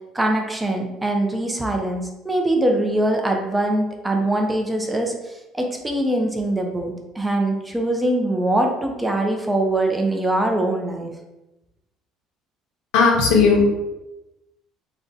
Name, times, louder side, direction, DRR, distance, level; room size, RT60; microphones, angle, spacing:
voice 1, 0.1-11.1, right 1 dB, 10° right, 2 dB, 0.4 m, -22 dB
voice 2, 12.9-13.6, left 5 dB, 90° left, 0 dB, 0.7 m, -15 dB
2.5 x 2.1 x 3.8 m, 0.99 s
cardioid pair, 120°, 0 cm